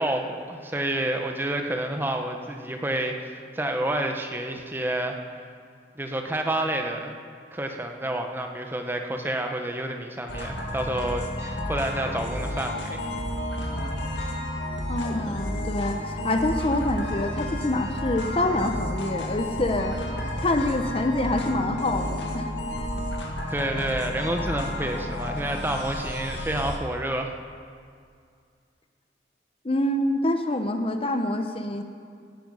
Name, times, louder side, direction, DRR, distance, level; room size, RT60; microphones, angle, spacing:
voice 1, 0.0-5.2 6.0-7.1 7.5-13.0 23.5-27.4, right 1 dB, 10° right, 4 dB, 0.9 m, -29 dB
sound 1, 10.3-26.8, left 1 dB, 80° left, 2.0 m, -31 dB
voice 2, 14.9-20.0 20.4-22.5 29.6-31.8, left 1 dB, 30° left, 6 dB, 0.7 m, -26 dB
17.0 x 9.9 x 5.5 m, 2.2 s
head